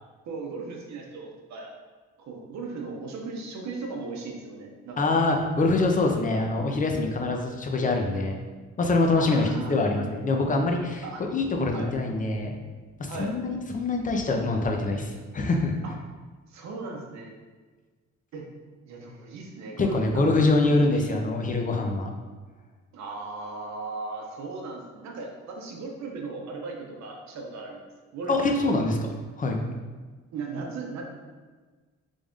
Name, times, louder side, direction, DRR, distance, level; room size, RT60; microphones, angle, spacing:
voice 1, 0.3-1.7 2.2-5.2 9.1-9.8 11.0-11.2 11.7-11.9 13.1-13.4 15.8-15.9 16.5-17.3 18.3-18.5 18.9-20.4 20.6-21.2 22.9-27.8 28.1-28.8 30.3-31.0, right 3 dB, 65° right, 1 dB, 0.7 m, -37 dB
voice 2, 5.0-8.4 8.8-11.0 11.3-12.5 13.0-15.8 19.8-22.1 28.3-28.9 29.4-29.6, left 2 dB, 25° left, 2 dB, 0.5 m, -24 dB
3.5 x 2.5 x 3.5 m, 1.4 s
cardioid pair, 90°, 30 cm